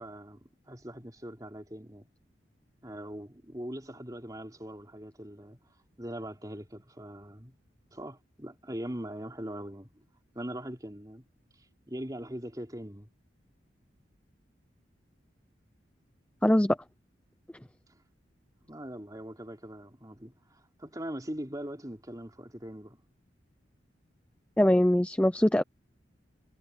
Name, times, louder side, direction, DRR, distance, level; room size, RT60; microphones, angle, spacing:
voice 1, 0.0-2.1 2.8-5.6 6.0-7.5 7.9-9.9 10.3-11.3 11.9-13.1 18.7-23.0, right 1 dB, 20° right, 3.7 m, -41 dB
voice 2, 16.4-16.8 24.6-25.6, left 1 dB, 5° left, 0.5 m, -22 dB
head